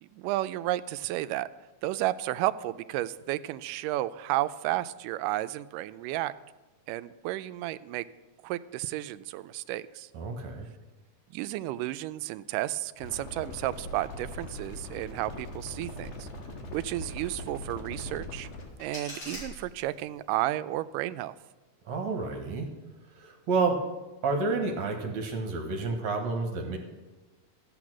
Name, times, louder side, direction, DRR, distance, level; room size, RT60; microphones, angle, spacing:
voice 1, 0.0-1.5 1.8-6.3 6.9-8.1 8.4-10.1 11.3-16.3 16.7-18.5 18.8-21.4, right 15 dB, 85° right, 13 dB, 2.1 m, -32 dB
voice 2, 10.1-10.7 21.9-22.7 23.1-23.8 24.2-26.8, right 4 dB, 65° right, 3 dB, 2.4 m, -30 dB
sound 1, 13.0-18.7, left 1 dB, 55° left, 2.5 m, -41 dB
sound 2, 18.3-20.3, left 1 dB, 40° left, 6.5 m, -44 dB
13.0 x 8.5 x 6.1 m, 1.2 s
omnidirectional pair, 3.7 m